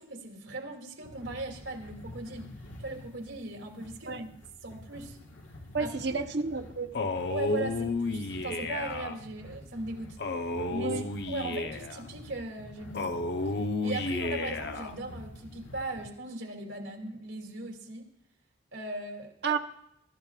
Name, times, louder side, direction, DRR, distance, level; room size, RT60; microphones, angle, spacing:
voice 1, 0.0-2.5 2.8-4.3 4.6-5.2 5.8-6.1 7.3-10.2 10.7-13.1 13.5-18.1 18.7-19.3, right 2 dB, 85° right, 2 dB, 2.7 m, -38 dB
sound 1, 1.0-16.0, left 1 dB, 90° left, 1.6 m, -49 dB
voice 2, 5.7-6.9 10.8-11.0 19.4-19.6, right 4 dB, 60° right, 5 dB, 1.0 m, -30 dB
Male speech man speaking, 6.9-9.2 10.2-12.0 12.9-14.9, left 2 dB, 55° left, 0.8 m, -32 dB
23.0 x 13.5 x 2.4 m, 0.75 s
head